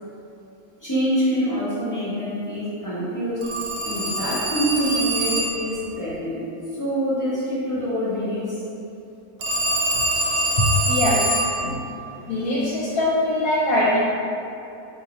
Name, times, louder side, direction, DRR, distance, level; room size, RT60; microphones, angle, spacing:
voice 1, 0.8-3.5 3.8-6.4 6.7-8.6, equal, 25° left, -11 dB, 0.4 m, -25 dB
Telephone, 3.4-5.7 9.4-11.6, right 1 dB, 90° right, 1.1 m, -24 dB
voice 2, 10.6-11.3 11.6-11.8 12.2-14.0, left 1 dB, 70° left, -7 dB, 1.0 m, -22 dB
4.0 x 2.6 x 2.9 m, 2.8 s
omnidirectional pair, 1.7 m